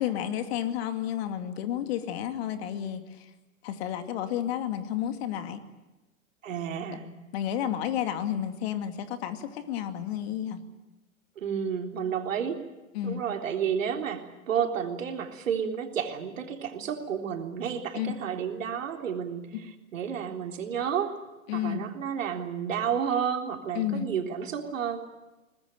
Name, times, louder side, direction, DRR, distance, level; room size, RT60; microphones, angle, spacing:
voice 1, 0.0-3.0 3.6-5.6 7.3-10.6 12.9-13.2 17.9-18.2 19.5-19.7 21.5-21.8 23.8-24.1, left 10 dB, 45° left, 8 dB, 2.4 m, -31 dB
voice 2, 6.4-7.1 11.4-12.6 13.0-21.1 21.5-25.1, right 8 dB, 65° right, 4 dB, 3.7 m, -31 dB
23.0 x 20.0 x 9.1 m, 1.1 s
figure-of-eight pair, 110°, 42 cm